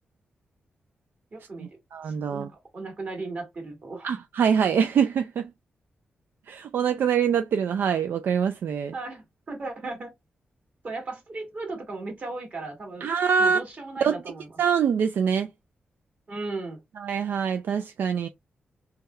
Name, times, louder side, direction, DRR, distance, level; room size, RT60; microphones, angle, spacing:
voice 1, 1.3-1.8 2.0-4.1 8.9-10.1 10.8-13.1 13.4-14.5 16.3-16.8, right 3 dB, 50° right, 1.7 m, -36 dB
voice 2, 1.9-2.5 4.0-5.5 6.5-8.9 13.0-13.6 14.0-14.1 14.6-15.5 17.0-18.3, right 7 dB, 75° right, 0.3 m, -24 dB
3.4 x 2.2 x 3.1 m
cardioid pair, 75°, 4 cm